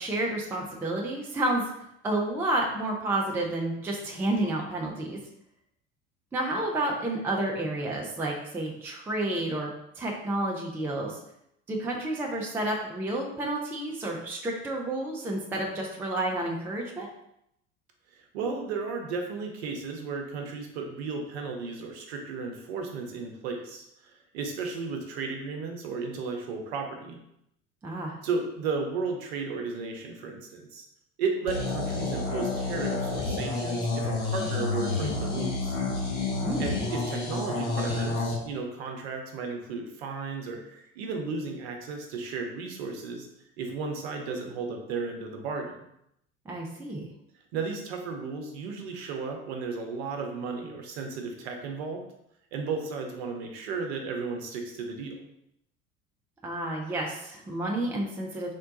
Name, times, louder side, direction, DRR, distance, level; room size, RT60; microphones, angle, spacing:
voice 1, 0.0-1.6 2.0-5.2 6.3-9.7 10.0-11.2 11.7-17.1 27.8-28.1 36.4-36.7 46.5-47.0 56.4-58.5, right 1 dB, 5° right, -1 dB, 0.4 m, -30 dB
voice 2, 18.1-27.2 28.2-30.8 31.2-35.8 36.6-43.3 43.6-45.8 47.5-52.0 52.5-55.2, right 4 dB, 55° right, 3 dB, 0.8 m, -34 dB
sound 1, 31.5-38.3, left 3 dB, 60° left, 1.1 m, -29 dB
3.6 x 2.2 x 3.9 m, 0.78 s
figure-of-eight pair, 70°, 39 cm